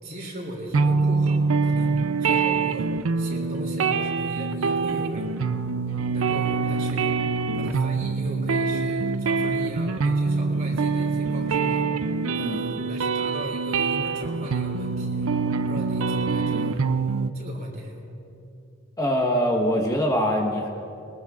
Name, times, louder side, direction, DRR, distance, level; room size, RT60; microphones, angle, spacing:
voice 1, 0.0-5.4 6.1-7.1 7.5-12.1 12.3-15.3 15.7-16.8 17.3-18.0, equal, 45° right, -1 dB, 2.9 m, -36 dB
sound 1, 0.7-17.3, right 4 dB, 75° right, 0.5 m, -25 dB
voice 2, 19.0-20.7, equal, 15° left, 0 dB, 1.1 m, -23 dB
24.0 x 20.0 x 2.4 m, 2.8 s
head